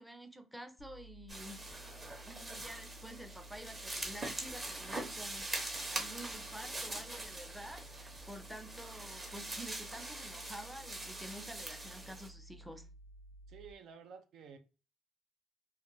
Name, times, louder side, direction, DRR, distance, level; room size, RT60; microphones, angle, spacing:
voice 1, 0.0-1.9 2.2-12.9, equal, 5° right, 0.4 m, -49 dB
sound 1, 0.8-13.7, right 1 dB, 70° left, 0.4 m, -55 dB
sound 2, 1.3-12.3, right 2 dB, 25° right, 0.8 m, -43 dB
voice 2, 13.5-14.6, right 6 dB, 80° right, 0.4 m, -52 dB
2.3 x 2.1 x 3.0 m
cardioid pair, 90°, 0 cm